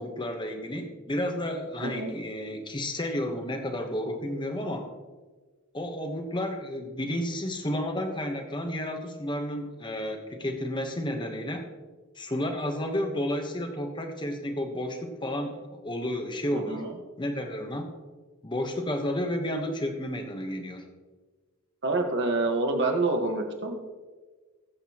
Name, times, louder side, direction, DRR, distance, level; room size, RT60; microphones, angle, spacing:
voice 1, 0.0-4.9 5.7-11.6 12.2-16.8 17.2-17.9 18.4-20.8, left 1 dB, 20° left, 5 dB, 1.1 m, -31 dB
voice 2, 1.8-2.1 16.5-16.9 21.8-24.0, right 2 dB, 55° right, 3 dB, 1.5 m, -27 dB
20.5 x 7.8 x 3.0 m, 1.4 s
head